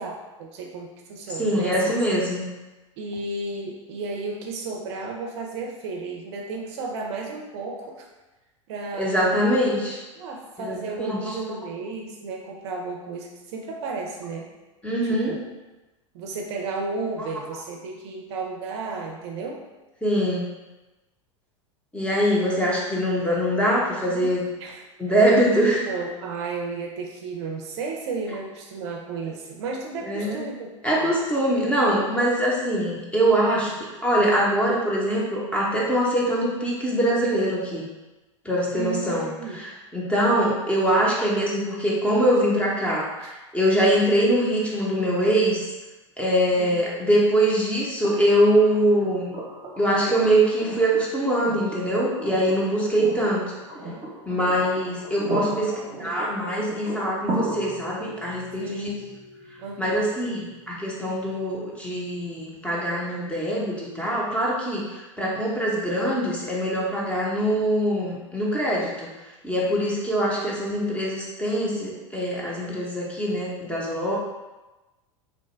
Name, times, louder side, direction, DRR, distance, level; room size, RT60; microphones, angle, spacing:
voice 1, 0.0-1.9 3.0-8.1 8.7-9.4 10.2-14.5 15.0-15.4 16.1-19.6 24.1-24.3 24.6-24.8 25.6-30.7 31.0-31.1 38.7-39.6 40.1-40.5 43.2-43.3 46.6-46.7 55.4-56.3 58.6-59.0 59.6-60.1 70.4-70.6, right 3 dB, 55° right, 0 dB, 0.5 m, -33 dB
voice 2, 1.4-2.5 9.0-10.0 10.6-11.4 14.8-15.4 17.2-17.3 20.0-20.5 21.9-24.4 25.0-25.8 30.0-30.4 30.8-33.7 34.0-37.8 38.4-45.7 46.2-49.3 49.8-53.5 54.3-55.7 56.0-58.9 59.8-69.1 69.4-74.2, right 1 dB, 5° left, -5 dB, 0.8 m, -23 dB
sound 1, 48.0-62.0 63.7-63.8, right 1 dB, 30° right, 0.8 m, -37 dB
2.9 x 2.1 x 3.3 m, 1.1 s
hypercardioid pair, 85°, 17 cm